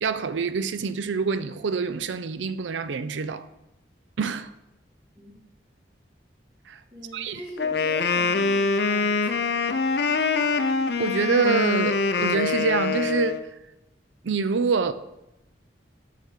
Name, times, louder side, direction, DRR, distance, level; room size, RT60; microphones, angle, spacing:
voice 1, 0.0-3.4 4.2-4.5 6.7-6.8 7.1-7.4 11.0-13.5 14.2-14.9, right 5 dB, 80° right, 0.5 m, -26 dB
voice 2, 6.9-9.5, equal, 25° right, 3.2 m, -42 dB
Wind instrument woodwind instrument, 7.6-13.4, left 4 dB, 60° left, 0.5 m, -24 dB
8.0 x 4.8 x 5.7 m
head